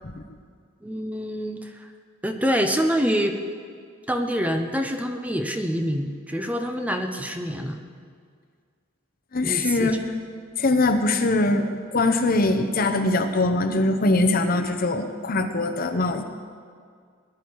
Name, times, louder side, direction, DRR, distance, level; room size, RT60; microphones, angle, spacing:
voice 1, 0.8-1.9 2.2-3.4 4.1-7.8 9.4-10.0, equal, 5° right, 5 dB, 0.7 m, -26 dB
voice 2, 9.3-10.0 10.6-16.2, left 2 dB, 45° left, 6 dB, 0.9 m, -22 dB
19.0 x 11.0 x 4.7 m, 2.1 s
head